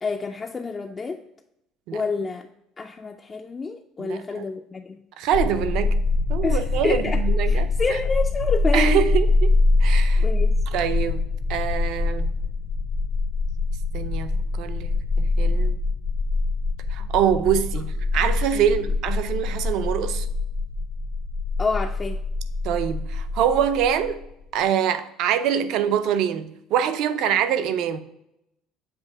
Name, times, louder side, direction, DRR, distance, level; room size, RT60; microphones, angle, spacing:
voice 1, 0.0-1.2 1.9-2.5 2.8-5.0 6.4-9.0 10.2-10.6 18.5-18.9 21.6-22.2, left 4 dB, 20° left, 0.3 m, -28 dB
voice 2, 4.0-4.5 5.2-6.0 6.3-8.0 8.7-9.5 9.8-10.2 10.7-12.3 13.9-15.8 16.9-20.3 22.6-24.2 24.5-28.0, right 9 dB, 60° right, 0.5 m, -25 dB
sound 1, 5.3-24.2, left 3 dB, 80° left, 1.1 m, -24 dB
7.5 x 2.7 x 4.8 m
cardioid pair, 155°, 0 cm